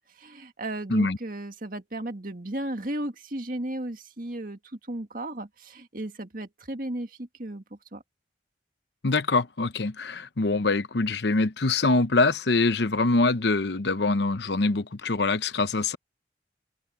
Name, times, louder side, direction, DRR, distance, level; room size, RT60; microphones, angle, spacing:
voice 1, 0.1-8.0, right 1 dB, 50° right, 2.0 m, -35 dB
voice 2, 9.0-16.0, left 3 dB, 70° left, 0.8 m, -24 dB
head